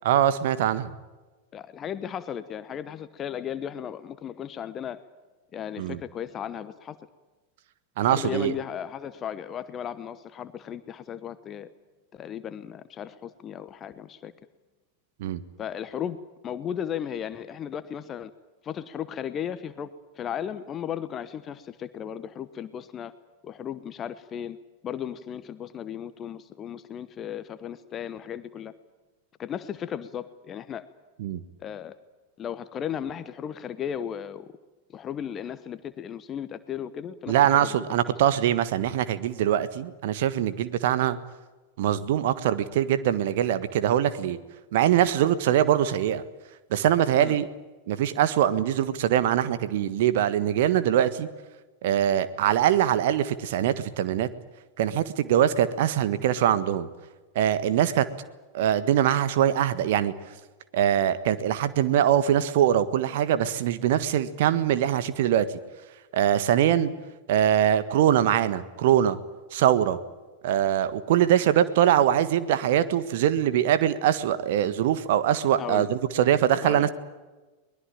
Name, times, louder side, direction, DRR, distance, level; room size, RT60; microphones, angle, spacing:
voice 1, 0.0-0.9 5.8-6.0 8.0-8.5 15.2-15.4 31.2-31.4 37.3-41.2 41.8-44.4 44.7-46.2 46.7-47.5 47.9-51.3 51.8-54.3 54.8-56.9 57.3-58.1 58.5-60.1 60.7-65.6 66.1-66.9 67.3-69.2 69.5-70.0 70.4-76.9, right 10 dB, 55° right, 14 dB, 1.5 m, -23 dB
voice 2, 1.5-5.0 5.5-7.0 8.0-11.7 12.1-14.3 15.6-16.2 16.4-18.3 18.6-19.9 20.1-23.1 23.4-24.6 24.8-28.7 29.4-30.8 31.6-32.0 32.4-34.5 34.9-37.7 38.0-38.1 47.2-47.4 75.6-75.9 76.6-76.9, left 9 dB, 25° left, 13 dB, 1.0 m, -35 dB
23.0 x 20.5 x 9.0 m, 1.2 s
figure-of-eight pair, 90°, 0 cm